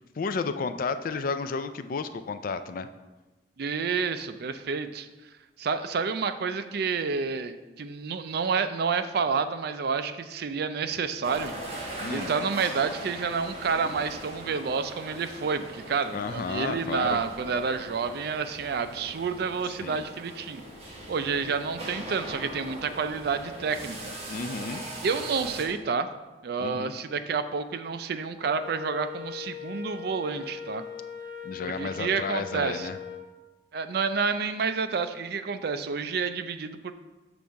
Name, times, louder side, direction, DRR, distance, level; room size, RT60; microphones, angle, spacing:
voice 1, 0.2-2.9 12.0-12.3 16.1-17.2 19.8-20.0 24.3-24.8 26.6-26.9 31.4-33.0, left 4 dB, 50° left, 11 dB, 0.4 m, -32 dB
voice 2, 3.6-5.1 5.6-11.5 11.8-20.6 21.1-24.1 25.0-26.1 26.4-30.8 31.6-32.9 33.7-36.9, right 5 dB, 60° right, 10 dB, 0.4 m, -29 dB
sound 1, 11.2-25.6, right 1 dB, 35° right, 1.3 m, -40 dB
Wind instrument woodwind instrument, 28.4-33.3, left 7 dB, 20° left, 0.8 m, -40 dB
7.0 x 3.4 x 6.3 m, 1.2 s
head